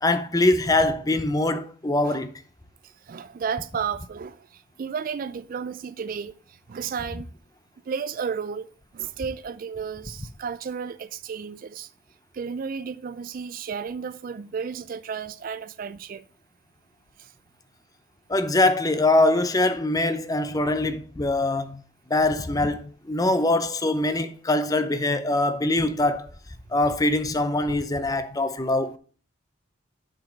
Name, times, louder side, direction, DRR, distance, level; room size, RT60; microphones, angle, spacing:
voice 1, 0.0-2.3 18.3-21.8 22.1-26.3 26.7-29.0, left 2 dB, 20° left, 0.6 m, -23 dB
voice 2, 2.8-7.3 7.9-11.9 12.3-16.2 17.2-17.3, right 6 dB, 45° right, 0.4 m, -33 dB
7.5 x 4.9 x 5.2 m
head